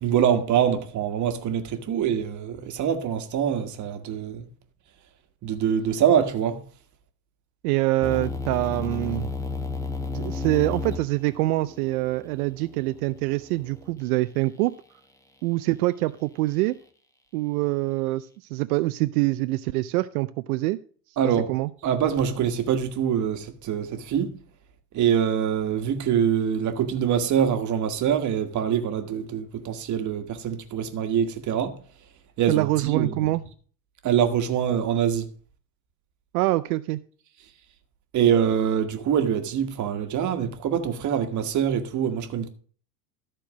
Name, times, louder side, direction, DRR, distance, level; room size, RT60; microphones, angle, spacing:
voice 1, 0.0-4.5 5.4-6.6 21.2-21.5 21.8-24.4 24.9-31.8 32.4-33.2 34.0-35.3 38.1-42.5, right 8 dB, 40° right, 1.5 m, -24 dB
voice 2, 7.6-9.3 10.1-14.7 15.4-16.8 17.3-20.8 21.2-21.7 32.5-33.4 36.3-37.0, right 19 dB, 80° right, 0.6 m, -25 dB
sound 1, 8.0-13.9, left 4 dB, 5° left, 1.2 m, -33 dB
13.5 x 4.5 x 6.1 m
supercardioid pair, 115°, 44 cm